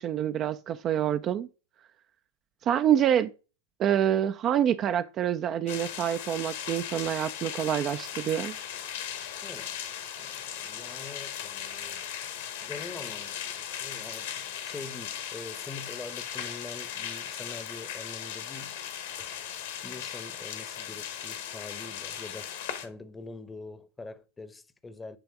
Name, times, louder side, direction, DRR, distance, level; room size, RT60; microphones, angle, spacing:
voice 1, 0.0-1.5 2.6-3.3 3.8-8.6, right 10 dB, 30° right, 0.4 m, -26 dB
sound 1, 5.7-22.9, left 9 dB, 55° left, 1.2 m, -38 dB
voice 2, 9.4-9.8 10.2-12.0 12.6-18.8 19.2-19.4 19.8-25.2, left 3 dB, 15° left, 0.8 m, -44 dB
9.8 x 3.4 x 5.8 m
figure-of-eight pair, 90°, 0 cm